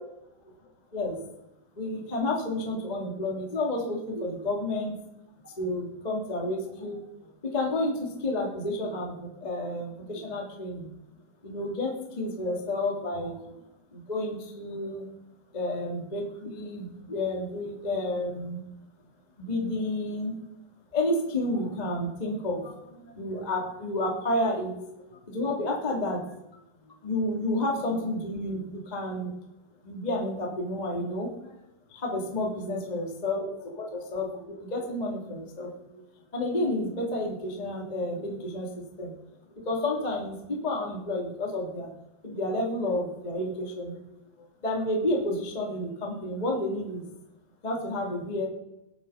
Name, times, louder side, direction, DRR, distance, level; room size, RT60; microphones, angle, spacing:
voice 1, 1.8-4.9 5.4-7.0 7.4-10.9 11.4-13.5 13.9-15.0 15.5-18.6 19.5-20.3 20.9-22.7 23.1-26.2 27.0-29.3 29.8-31.3 31.9-35.7 36.3-39.1 39.6-41.9 42.2-44.0 44.6-47.0 47.6-48.5, left 1 dB, 75° left, 0 dB, 0.4 m, -30 dB
20.0 x 6.8 x 5.6 m, 0.88 s
omnidirectional pair, 5.8 m